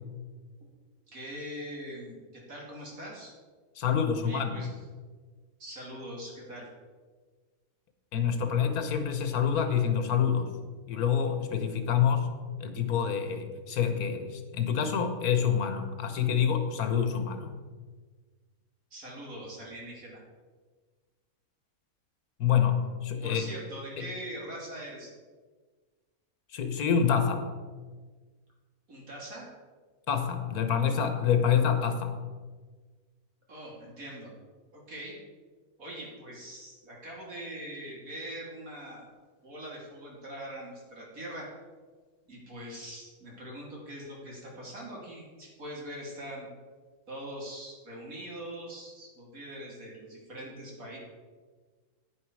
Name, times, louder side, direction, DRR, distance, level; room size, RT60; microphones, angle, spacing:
voice 1, 1.1-3.3 4.2-4.7 5.6-6.7 18.9-20.2 23.2-25.1 28.9-29.5 33.5-34.3 34.7-35.1 35.8-39.0 39.4-41.5 42.3-46.5 47.1-51.0, right 1 dB, 65° right, -3 dB, 3.3 m, -42 dB
voice 2, 3.8-4.6 8.1-10.5 10.9-12.3 12.6-17.5 22.4-23.5 24.0-24.1 26.5-27.4 30.1-32.2, left 7 dB, 85° left, 7 dB, 1.6 m, -27 dB
9.6 x 9.4 x 4.7 m, 1.4 s
omnidirectional pair, 1.5 m